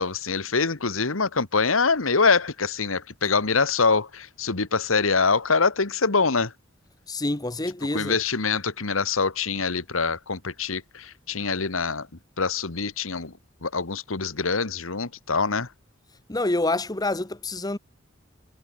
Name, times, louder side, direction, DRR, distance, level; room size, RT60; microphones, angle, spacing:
voice 1, 0.0-6.5 7.9-12.1 12.4-13.3 13.6-15.7, left 4 dB, 90° left, 1.6 m, -24 dB
voice 2, 7.1-8.2 16.3-17.8, left 2 dB, 20° left, 1.1 m, -27 dB
head